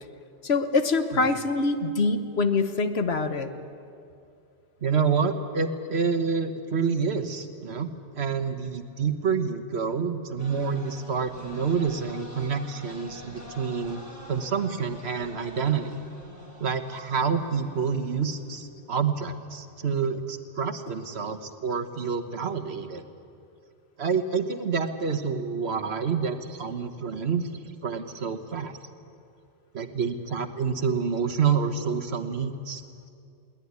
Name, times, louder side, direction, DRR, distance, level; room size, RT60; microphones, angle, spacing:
voice 1, 0.4-3.5, left 3 dB, 65° left, 9 dB, 1.4 m, -24 dB
voice 2, 4.8-14.0 14.3-15.9 16.6-23.0 24.0-27.5 27.8-28.8 29.7-32.8, right 6 dB, 65° right, 9 dB, 1.5 m, -28 dB
sound 1, 10.4-18.6, equal, 15° right, 5.0 m, -46 dB
22.0 x 18.5 x 9.6 m, 2.5 s
omnidirectional pair, 1.2 m